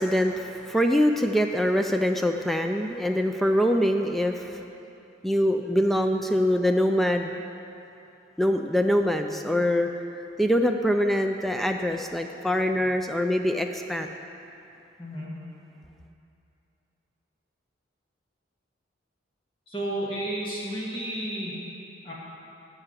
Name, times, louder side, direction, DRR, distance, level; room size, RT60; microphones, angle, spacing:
voice 1, 0.0-4.6 5.2-7.4 8.4-9.9 10.4-14.1, equal, ahead, 5 dB, 0.3 m, -24 dB
voice 2, 15.0-15.4 19.7-21.6 22.0-22.1, right 1 dB, 25° left, -6 dB, 1.9 m, -32 dB
13.5 x 4.9 x 8.1 m, 2.7 s
head